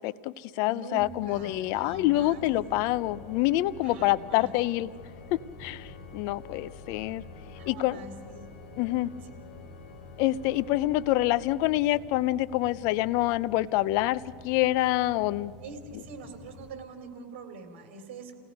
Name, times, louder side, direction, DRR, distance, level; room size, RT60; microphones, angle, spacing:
voice 1, 0.0-4.9 5.6-7.2 7.7-8.0 8.8-9.1 10.2-15.5, left 16 dB, 55° left, 17 dB, 0.6 m, -26 dB
voice 2, 0.6-2.5 3.8-4.5 7.5-8.4 9.2-9.3 15.6-18.3, right 3 dB, 75° right, 6 dB, 3.0 m, -44 dB
sound 1, 1.0-16.7, left 3 dB, ahead, 3.8 m, -50 dB
Organ, 1.7-12.4, left 4 dB, 85° left, 2.2 m, -49 dB
29.0 x 18.0 x 5.3 m, 2.1 s
supercardioid pair, 125°, 6 cm